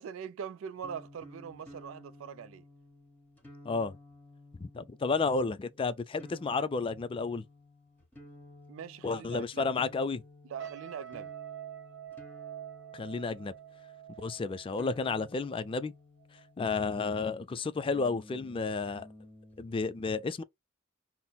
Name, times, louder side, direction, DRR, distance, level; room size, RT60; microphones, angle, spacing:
voice 1, 0.0-2.6 8.7-9.8 10.5-11.3, right 7 dB, 75° right, 0.3 m, -42 dB
sound 1, 0.8-17.1 17.9-19.9, left 2 dB, 10° left, 1.1 m, -54 dB
voice 2, 3.6-4.0 4.6-7.4 9.0-10.2 12.9-13.5 14.2-15.9 16.6-19.1 19.6-20.4, left 4 dB, 25° left, 0.3 m, -32 dB
sound 2, 10.6-15.9 16.2-16.5, right 11 dB, 60° right, 1.1 m, -46 dB
5.6 x 2.0 x 2.2 m
head